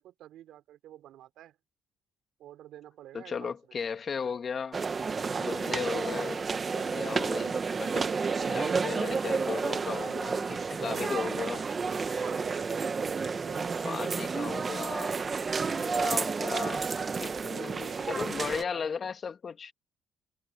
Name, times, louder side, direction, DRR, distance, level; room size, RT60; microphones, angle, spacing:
voice 1, 0.0-1.6 2.4-3.5 7.9-9.1 9.8-9.9 10.7-14.7 17.3-18.9, right 13 dB, 85° right, 4.2 m, -48 dB
voice 2, 3.1-4.8 5.4-6.4 6.7-8.1 8.5-11.6 13.8-15.2 15.7-16.8 17.1-19.7, left 6 dB, 45° left, 2.0 m, -36 dB
sound 1, 4.7-18.6, right 5 dB, 35° right, 1.3 m, -31 dB
cardioid pair, 90°, 0 cm